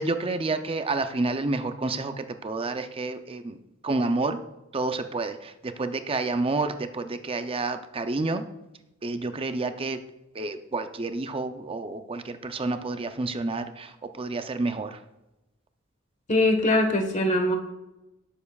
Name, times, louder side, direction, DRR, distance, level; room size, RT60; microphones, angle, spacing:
voice 1, 0.0-3.6 3.8-4.4 4.7-8.4 9.0-10.0 10.3-13.9 14.2-15.0, right 3 dB, 25° right, 8 dB, 0.5 m, -29 dB
voice 2, 16.3-17.6, left 1 dB, 35° left, 4 dB, 1.4 m, -22 dB
17.5 x 7.3 x 2.4 m, 0.95 s
head